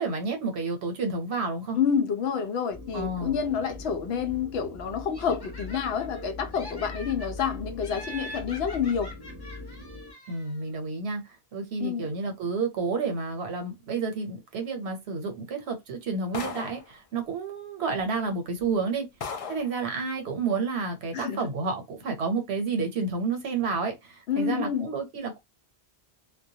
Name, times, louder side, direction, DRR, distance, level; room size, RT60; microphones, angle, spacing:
voice 1, 0.0-1.8 2.9-3.4 10.3-11.2 11.5-19.1 19.5-25.4, right 4 dB, 85° right, 1.0 m, -30 dB
voice 2, 1.7-9.1 11.8-12.1 21.1-21.4 24.3-24.9, left 7 dB, 80° left, 0.8 m, -28 dB
sound 1, 2.7-10.1, left 2 dB, 30° right, 0.6 m, -41 dB
Laughter, 5.1-6.2 6.5-7.5 7.8-10.6, equal, 25° left, 0.7 m, -44 dB
sound 2, 16.3-16.9 17.9-18.0 18.6-18.7 19.2-19.7, left 5 dB, 55° left, 0.4 m, -36 dB
2.2 x 2.1 x 2.7 m
omnidirectional pair, 1.1 m